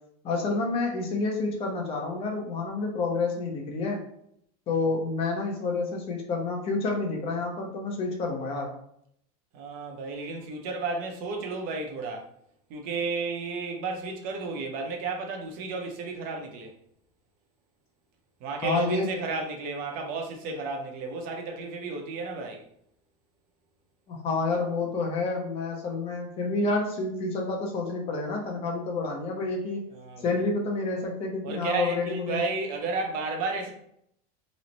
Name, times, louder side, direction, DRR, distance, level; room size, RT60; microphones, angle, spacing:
voice 1, 0.2-4.0 4.7-8.7 18.6-19.1 24.1-29.9 30.2-32.4, left 3 dB, 30° left, 0 dB, 0.7 m, -29 dB
voice 2, 9.5-12.2 12.7-16.7 18.4-22.7 29.9-30.3 31.4-33.7, right 3 dB, 50° right, 2 dB, 0.8 m, -32 dB
3.1 x 2.1 x 3.9 m, 0.70 s
supercardioid pair, 150°, 19 cm